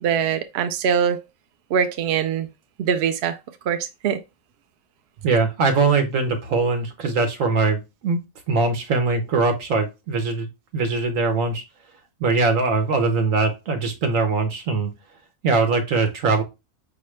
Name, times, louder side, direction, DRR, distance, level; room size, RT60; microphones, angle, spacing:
voice 1, 0.0-1.2 1.7-2.5 2.8-3.4 3.7-4.2, right 7 dB, 65° right, 0.7 m, -22 dB
voice 2, 5.2-8.2 8.5-10.5 10.7-11.6 12.2-14.9 15.4-16.4, right 4 dB, 90° right, 1.3 m, -21 dB
5.1 x 2.8 x 3.1 m
omnidirectional pair, 1.3 m